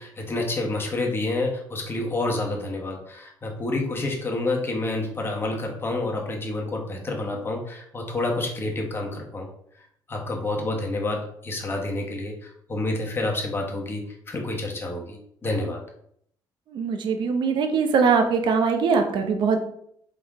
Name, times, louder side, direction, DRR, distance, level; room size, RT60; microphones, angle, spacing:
voice 1, 0.0-9.5 10.1-15.8, left 2 dB, 25° left, 0 dB, 1.2 m, -28 dB
voice 2, 16.7-19.6, right 5 dB, 65° right, 5 dB, 0.8 m, -22 dB
3.7 x 3.5 x 3.6 m, 0.68 s
cardioid pair, 95°, 9 cm